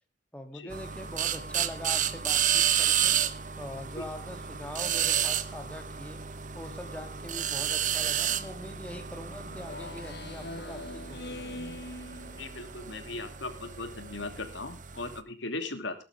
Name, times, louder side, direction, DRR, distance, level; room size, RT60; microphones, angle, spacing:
voice 1, 0.3-3.1 3.6-6.2 6.5-11.7, left 1 dB, 10° left, 5 dB, 2.8 m, -43 dB
sound 1, 0.7-15.2, right 9 dB, 45° right, 1.1 m, -31 dB
Speech synthesizer, 9.5-13.0, left 2 dB, 60° left, 1.4 m, -42 dB
voice 2, 12.4-15.9, left 2 dB, 80° left, 7 dB, 2.9 m, -38 dB
18.5 x 12.0 x 3.6 m, 0.32 s
head